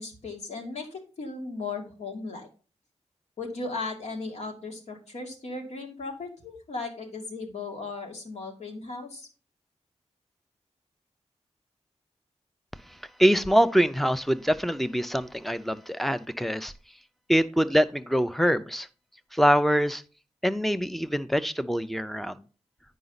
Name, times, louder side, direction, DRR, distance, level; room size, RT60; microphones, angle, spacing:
voice 1, 0.0-2.5 3.4-9.3, left 3 dB, 80° left, 1 dB, 2.3 m, -36 dB
voice 2, 12.9-16.7 17.3-18.9 19.3-20.0 20.4-22.3, equal, ahead, 13 dB, 0.5 m, -24 dB
9.8 x 5.1 x 4.0 m, 0.37 s
wide cardioid pair, 100°, 11 cm